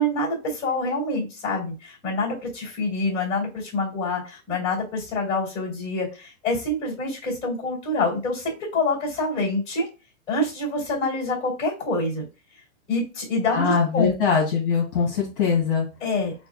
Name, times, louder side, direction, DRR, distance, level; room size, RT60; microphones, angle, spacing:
voice 1, 0.0-9.9 10.3-12.3 12.9-14.1 16.0-16.3, left 2 dB, 15° left, -3 dB, 1.9 m, -26 dB
voice 2, 13.5-15.9, left 6 dB, 45° left, -1 dB, 1.2 m, -22 dB
6.4 x 2.4 x 2.4 m, 0.30 s
hypercardioid pair, 175°, 38 cm